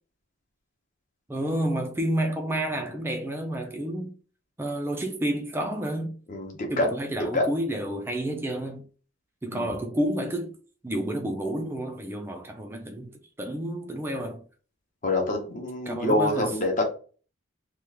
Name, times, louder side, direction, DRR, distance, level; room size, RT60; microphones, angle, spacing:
voice 1, 1.3-4.1 4.6-6.2 6.7-8.8 9.4-10.5 10.8-14.4 15.9-16.5, right 1 dB, 10° right, 0.4 m, -30 dB
voice 2, 6.3-6.9 7.3-7.5 9.5-9.7 15.0-16.8, left 2 dB, 35° left, 0.8 m, -26 dB
3.0 x 2.4 x 3.4 m
head